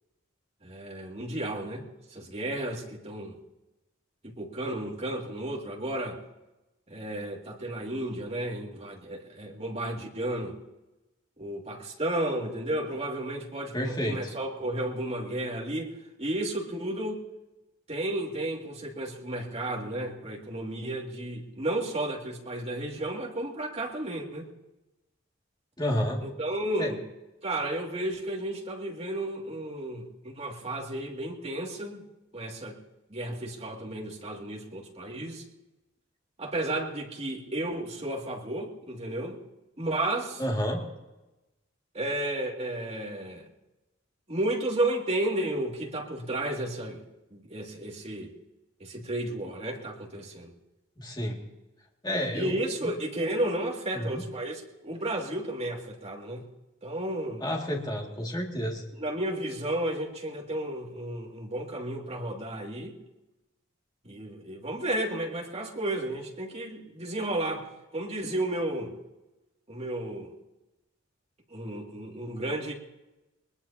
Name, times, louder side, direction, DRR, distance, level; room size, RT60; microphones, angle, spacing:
voice 1, 0.6-3.4 4.2-6.2 6.9-10.6 11.4-15.9 16.2-17.2 17.9-24.5 26.2-27.0 27.4-32.1 32.3-32.8 33.1-35.4 36.4-39.4 39.8-40.4 41.9-43.4 44.3-47.0 47.3-48.3 48.8-50.5 52.3-56.4 56.8-57.4 59.0-63.0 64.0-67.7 67.9-68.9 69.7-70.3 71.5-72.7, right 1 dB, 30° right, -1 dB, 2.5 m, -33 dB
voice 2, 13.7-14.3 25.8-26.2 26.8-26.9 40.4-40.8 51.0-51.4 52.0-52.5 53.9-54.2 57.4-58.8, equal, 20° left, -1 dB, 2.4 m, -30 dB
21.5 x 21.0 x 2.9 m, 1.0 s
head